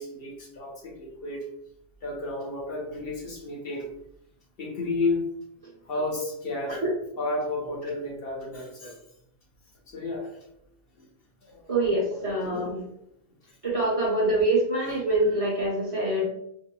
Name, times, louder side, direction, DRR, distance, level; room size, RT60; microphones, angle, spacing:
voice 1, 0.0-1.5 2.0-3.9 4.6-5.2 5.9-6.8 7.2-9.0 9.9-10.4 11.0-11.1 11.4-11.7 12.2-12.7 13.5-13.6 14.8-14.9, left 2 dB, 60° left, -1 dB, 0.9 m, -32 dB
voice 2, 11.7-12.8 13.6-16.2, right 1 dB, 30° right, -5 dB, 1.0 m, -25 dB
4.6 x 2.7 x 2.2 m, 0.78 s
omnidirectional pair, 1.2 m